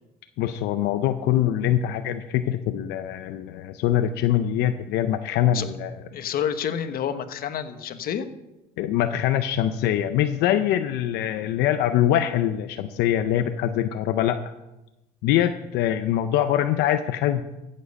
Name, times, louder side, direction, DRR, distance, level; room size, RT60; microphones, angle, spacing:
voice 1, 0.4-5.9 8.8-14.4 15.2-17.4, left 11 dB, 90° left, 8 dB, 0.6 m, -23 dB
voice 2, 6.1-8.3, left 8 dB, 60° left, 9 dB, 1.1 m, -28 dB
15.0 x 7.4 x 5.4 m, 0.98 s
cardioid pair, 110°, 17 cm